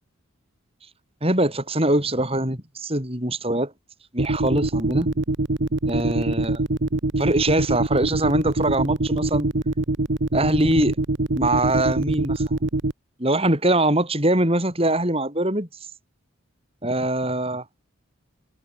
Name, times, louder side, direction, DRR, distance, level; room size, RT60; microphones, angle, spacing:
voice 1, 1.2-3.7 4.1-5.1 5.9-6.6 7.2-9.5 10.3-11.0 11.3-12.6 13.2-15.7 16.8-17.6, right 1 dB, 25° right, 7.3 m, -22 dB
sound 1, 4.2-12.9, right 2 dB, 55° right, 1.0 m, -23 dB
head